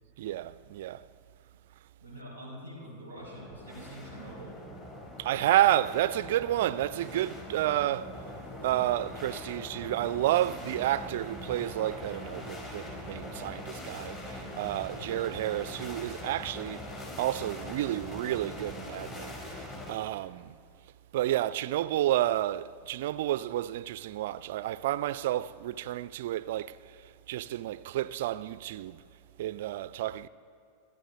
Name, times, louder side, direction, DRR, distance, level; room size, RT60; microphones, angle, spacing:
voice 1, 0.2-1.0 5.2-8.2 8.6-16.9 17.2-19.4 19.9-20.6 21.1-26.8 27.3-29.0 29.4-30.3, right 13 dB, 55° right, 0.4 m, -30 dB
voice 2, 2.0-4.6, right 1 dB, 85° left, 4.9 m, -45 dB
sound 1, 3.2-19.9, left 1 dB, 30° left, 4.7 m, -42 dB
29.5 x 12.0 x 3.6 m
figure-of-eight pair, 90°, 0 cm